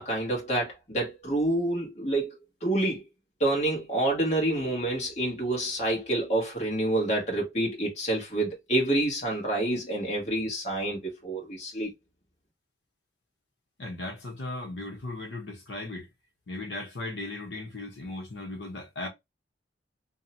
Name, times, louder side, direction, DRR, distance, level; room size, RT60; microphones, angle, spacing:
voice 1, 0.0-3.0 3.4-11.9, right 1 dB, 40° left, 1.0 m, -28 dB
voice 2, 13.8-16.1 16.5-19.1, left 2 dB, 75° left, 0.8 m, -37 dB
2.7 x 2.1 x 2.7 m
head